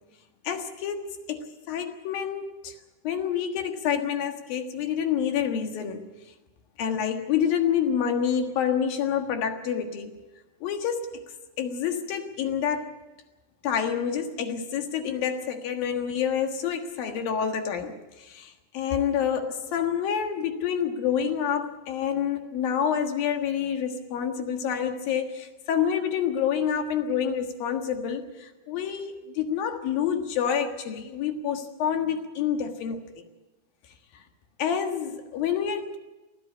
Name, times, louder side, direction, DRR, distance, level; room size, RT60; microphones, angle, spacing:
voice 1, 0.4-2.7 3.0-6.0 6.8-10.1 10.6-11.2 11.6-12.9 13.6-17.9 18.2-33.0 34.6-36.0, left 8 dB, 85° left, 5 dB, 3.4 m, -28 dB
23.5 x 13.5 x 8.5 m, 1.1 s
omnidirectional pair, 4.0 m